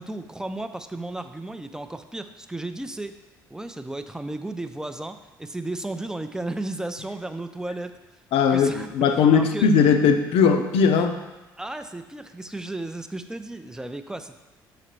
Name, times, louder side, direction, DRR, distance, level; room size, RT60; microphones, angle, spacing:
voice 1, 0.0-3.1 3.5-8.0 8.5-9.7 11.6-14.4, right 2 dB, 5° right, 9 dB, 0.4 m, -34 dB
voice 2, 8.3-11.1, left 6 dB, 60° left, 6 dB, 0.5 m, -19 dB
6.2 x 4.8 x 3.1 m, 1.1 s
figure-of-eight pair, 45°, 11 cm